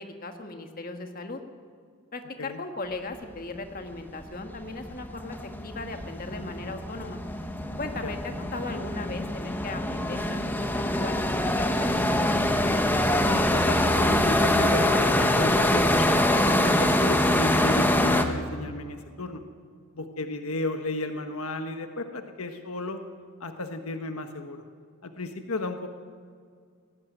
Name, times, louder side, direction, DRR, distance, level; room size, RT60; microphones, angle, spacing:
voice 1, 0.0-1.4 2.1-5.4 5.6-7.2 7.8-8.2 8.5-12.4, left 2 dB, 40° left, 5 dB, 1.6 m, -37 dB
sound 1, 4.0-4.1 4.4-18.2, left 1 dB, 10° left, 1.1 m, -24 dB
voice 2, 13.2-19.4 19.9-23.0 23.4-24.6 25.0-25.9, left 2 dB, 80° left, 7 dB, 1.3 m, -33 dB
18.5 x 16.0 x 9.1 m, 2.1 s
head